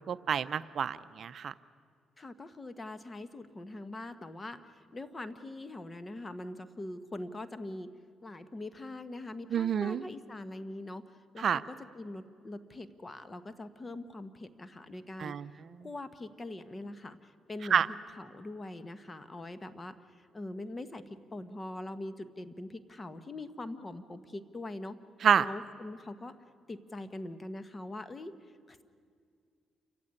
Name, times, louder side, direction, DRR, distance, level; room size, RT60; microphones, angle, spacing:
voice 1, 0.0-1.5 9.5-10.0 11.4-11.6 15.2-15.4 17.7-17.9 25.2-25.4, right 8 dB, 55° right, 14 dB, 0.6 m, -28 dB
voice 2, 2.2-7.9 8.2-15.3 15.8-17.8 18.2-21.0 21.3-25.0 25.4-26.3 26.7-28.3 28.7-28.8, left 2 dB, 25° left, 12 dB, 1.4 m, -43 dB
28.5 x 15.5 x 9.8 m, 2.2 s
cardioid pair, 90°, 0 cm